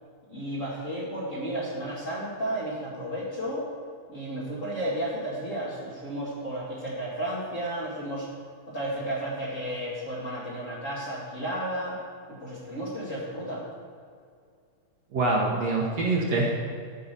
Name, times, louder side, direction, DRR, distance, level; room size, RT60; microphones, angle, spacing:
voice 1, 0.3-3.7 4.1-8.3 8.7-12.0 12.3-13.6, right 1 dB, 25° left, -7 dB, 2.2 m, -33 dB
voice 2, 15.1-16.5, right 2 dB, 60° right, -2 dB, 2.2 m, -25 dB
13.5 x 5.7 x 6.8 m, 2.2 s
omnidirectional pair, 3.6 m